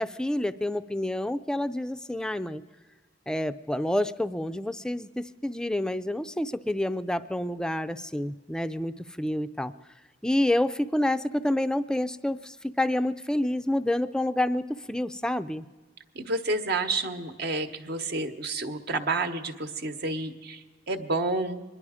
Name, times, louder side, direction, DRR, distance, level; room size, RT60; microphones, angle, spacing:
voice 1, 0.0-2.6 3.3-9.7 10.2-15.7, left 1 dB, 5° left, 12 dB, 0.4 m, -28 dB
voice 2, 16.1-21.6, right 2 dB, 60° right, 7 dB, 1.0 m, -30 dB
24.5 x 11.0 x 4.9 m, 1.4 s
head